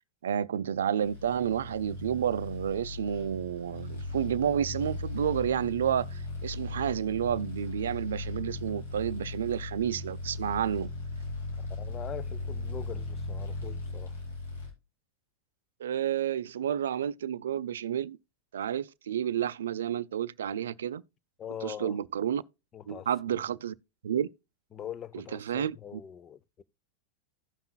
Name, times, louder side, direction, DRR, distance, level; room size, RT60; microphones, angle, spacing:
voice 1, 0.2-10.9 15.8-18.2 18.5-21.0 21.6-22.4 22.9-23.7 24.0-24.3 25.1-26.0, right 9 dB, 80° right, 0.4 m, -30 dB
sound 1, 0.9-14.7, left 2 dB, 80° left, 3.9 m, -38 dB
voice 2, 11.8-14.1 21.4-21.9 22.7-23.1 24.7-26.6, left 9 dB, 30° left, 0.5 m, -42 dB
16.0 x 5.8 x 2.2 m
hypercardioid pair, 100°, 0 cm